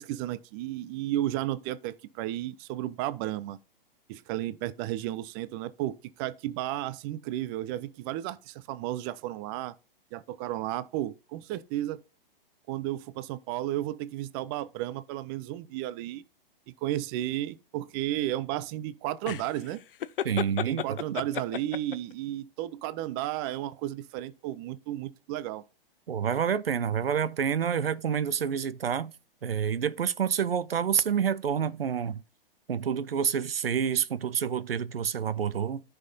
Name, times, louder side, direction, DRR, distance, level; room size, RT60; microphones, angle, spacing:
voice 1, 0.0-3.6 4.1-9.7 10.1-12.0 12.7-16.2 16.8-19.8 20.7-25.6, right 14 dB, 25° right, 0.4 m, -33 dB
sound 1, 19.3-22.1, left 10 dB, 65° left, 0.6 m, -33 dB
voice 2, 20.2-21.0 26.1-29.1 29.4-32.2 32.7-35.8, right 8 dB, 80° right, 0.6 m, -28 dB
14.0 x 5.5 x 2.7 m
figure-of-eight pair, 115°, 29 cm